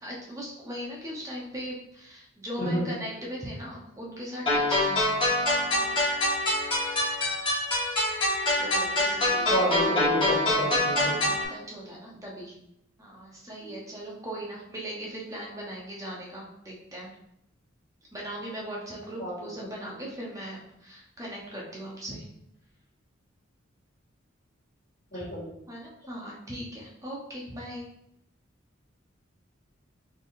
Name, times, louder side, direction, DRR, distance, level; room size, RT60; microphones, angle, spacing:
voice 1, 0.0-5.1 8.6-9.5 11.0-12.5 13.0-17.1 18.1-22.2 25.1-25.3 25.7-27.9, equal, 15° right, -4 dB, 0.9 m, -39 dB
voice 2, 2.6-2.9 9.5-11.2 13.6-13.7 19.2-19.3 25.1-25.4, equal, 50° left, -9 dB, 1.4 m, -29 dB
sound 1, 4.5-11.5, left 1 dB, 25° left, 1.4 m, -25 dB
4.2 x 3.6 x 2.6 m, 0.78 s
head